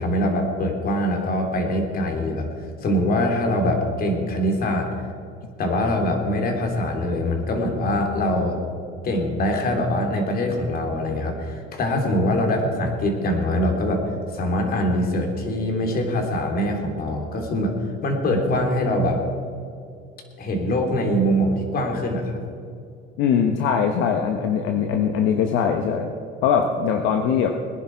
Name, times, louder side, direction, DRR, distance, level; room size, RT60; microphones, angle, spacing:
voice 1, 0.0-2.5 2.8-4.9 5.6-8.6 9.0-17.7 18.0-19.2 20.4-22.4, left 1 dB, 45° left, 3 dB, 3.2 m, -23 dB
voice 2, 23.2-26.1 26.4-27.5, left 7 dB, 75° left, 4 dB, 1.1 m, -21 dB
20.5 x 10.5 x 4.7 m, 2.4 s
cardioid pair, 115°, 21 cm